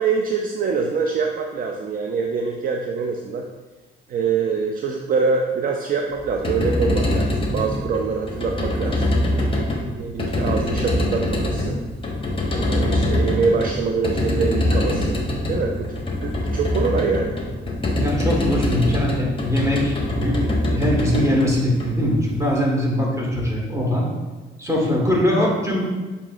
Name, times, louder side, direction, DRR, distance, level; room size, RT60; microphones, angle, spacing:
voice 1, 0.0-3.4 4.1-9.1 9.9-11.8 12.5-17.4, right 5 dB, 45° right, 2 dB, 0.4 m, -24 dB
sound 1, 6.2-22.4, left 1 dB, 25° left, 0.8 m, -24 dB
voice 2, 18.0-24.1 24.6-25.8, equal, 15° right, -3 dB, 1.4 m, -21 dB
7.2 x 2.8 x 2.4 m, 1.3 s
cardioid pair, 90°, 20 cm